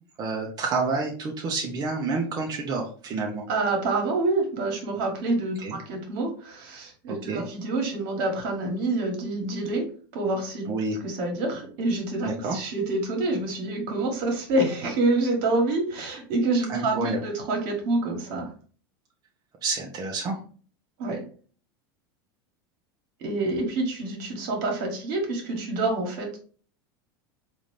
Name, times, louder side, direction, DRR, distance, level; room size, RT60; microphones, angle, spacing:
voice 1, 0.2-3.4 5.6-5.8 7.1-7.4 10.7-11.0 12.2-12.6 16.7-17.2 19.6-20.4, right 3 dB, 35° right, -1 dB, 0.7 m, -29 dB
voice 2, 3.5-18.5 21.0-21.3 23.2-26.4, right 2 dB, 65° right, 2 dB, 1.4 m, -27 dB
3.9 x 2.5 x 3.1 m, 0.42 s
supercardioid pair, 110°, 12 cm